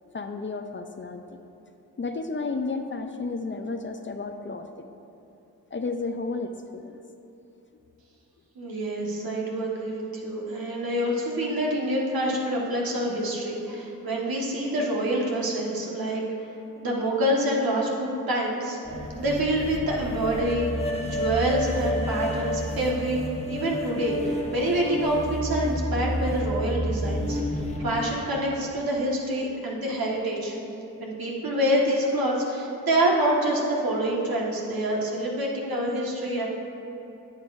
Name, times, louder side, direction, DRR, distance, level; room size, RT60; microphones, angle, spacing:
voice 1, 0.1-1.2 2.0-4.9 5.7-7.0, left 3 dB, 30° left, 6 dB, 0.5 m, -32 dB
voice 2, 8.5-16.2 16.8-18.8 19.2-23.2 23.5-30.6 31.0-36.5, right 1 dB, 70° right, -3 dB, 1.6 m, -26 dB
sound 1, 18.8-28.0, left 1 dB, 15° left, 1.2 m, -30 dB
10.5 x 8.1 x 2.6 m, 3.0 s
cardioid pair, 50°, 37 cm